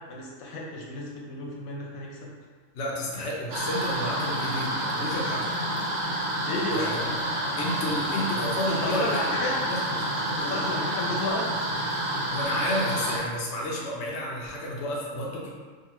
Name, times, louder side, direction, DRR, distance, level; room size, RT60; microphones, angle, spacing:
voice 1, 0.1-2.3 6.4-7.1 8.7-9.6 10.1-11.4, left 2 dB, 85° left, -3 dB, 1.0 m, -32 dB
voice 2, 2.7-5.5 6.7-7.1 7.6-9.2 9.7-9.9 10.4-10.6 12.3-15.5, left 1 dB, 60° left, -4 dB, 0.8 m, -31 dB
sound 1, 3.5-13.2, right 1 dB, 65° right, 0.6 m, -29 dB
2.7 x 2.4 x 2.8 m, 1.5 s
omnidirectional pair, 1.4 m